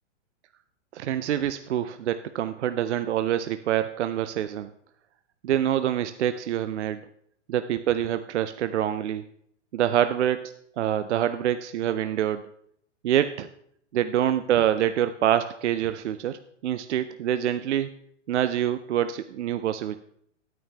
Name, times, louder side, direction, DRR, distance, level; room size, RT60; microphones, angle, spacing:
voice 1, 0.9-4.7 5.4-7.0 7.5-9.2 9.7-12.4 13.0-13.5 13.9-17.9 18.3-20.0, right 11 dB, 65° right, 11 dB, 0.5 m, -26 dB
11.0 x 9.2 x 3.3 m, 0.69 s
hypercardioid pair, 175°, 37 cm